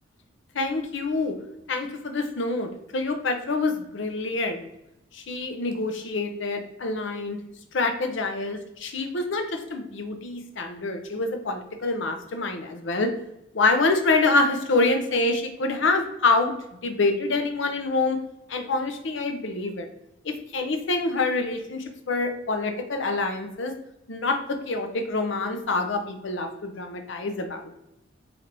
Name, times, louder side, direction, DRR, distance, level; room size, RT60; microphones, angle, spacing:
voice 1, 0.5-1.4 1.7-4.7 5.1-7.4 7.7-13.1 13.5-16.5 16.8-18.2 18.5-19.9 20.2-23.7 24.1-27.8, left 3 dB, 60° left, 6 dB, 0.6 m, -26 dB
3.3 x 2.9 x 3.8 m, 0.85 s
head